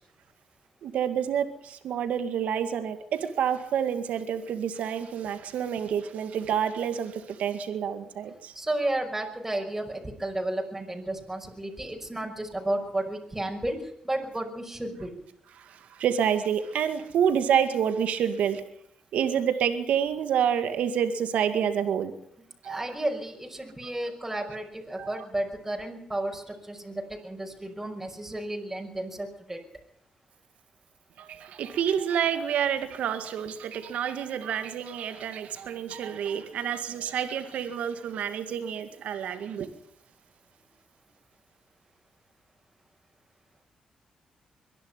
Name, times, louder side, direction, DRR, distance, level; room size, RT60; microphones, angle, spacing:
voice 1, 0.8-8.5 15.6-18.6 19.1-22.1 22.6-22.8 25.0-25.2 31.2-39.7, right 8 dB, 85° right, 9 dB, 2.1 m, -28 dB
voice 2, 8.6-15.1 22.6-29.6, right 1 dB, 15° right, 2 dB, 5.7 m, -32 dB
23.0 x 11.5 x 9.8 m, 0.70 s
cardioid pair, 80°, 2 cm